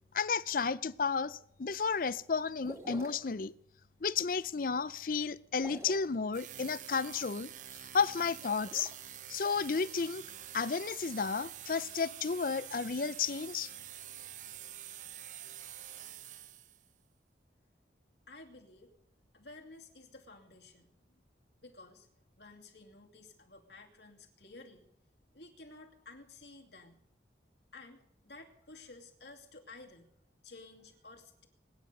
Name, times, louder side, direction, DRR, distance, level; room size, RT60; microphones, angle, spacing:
voice 1, 0.1-3.5 4.0-7.5 7.9-8.9 9.3-10.2 10.5-13.7, left 5 dB, 50° left, 0.5 m, -32 dB
sound 1, 2.6-3.3 5.5-6.1 8.3-8.9, right 1 dB, 15° right, 1.7 m, -47 dB
sound 2, 6.3-16.9, right 11 dB, 45° right, 0.6 m, -47 dB
voice 2, 18.3-18.9 19.3-20.9 21.6-22.1 22.4-24.9 25.3-27.0 27.7-28.0 28.2-30.1 30.4-31.5, left 3 dB, 75° left, 2.6 m, -53 dB
22.0 x 9.9 x 6.7 m
head